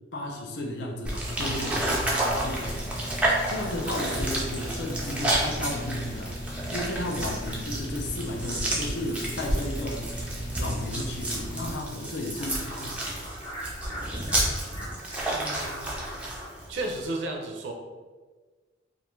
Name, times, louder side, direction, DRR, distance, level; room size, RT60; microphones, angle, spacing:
voice 1, 0.1-3.0 3.5-6.3 6.7-10.1 10.6-13.2, left 1 dB, 65° left, 1 dB, 0.4 m, -34 dB
sound 1, 1.1-17.1, right 1 dB, 5° right, 0.3 m, -31 dB
sound 2, 1.3-11.7, equal, 90° left, 1.0 m, -35 dB
sound 3, 10.1-10.3 10.5-10.6 10.9-11.0 11.3-16.7, equal, 25° left, 0.7 m, -40 dB
voice 2, 15.3-16.1 16.7-17.7, right 2 dB, 80° right, 2 dB, 0.4 m, -34 dB
2.5 x 2.2 x 3.0 m, 1.4 s
head